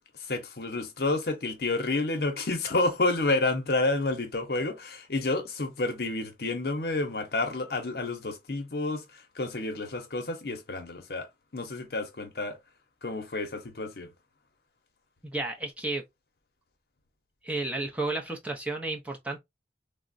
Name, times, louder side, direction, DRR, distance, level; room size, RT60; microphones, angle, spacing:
voice 1, 0.1-12.6 13.0-14.1, left 2 dB, 60° left, 0.8 m, -30 dB
voice 2, 15.3-16.0 17.4-19.4, right 2 dB, 10° right, 0.5 m, -32 dB
3.5 x 2.0 x 2.5 m
head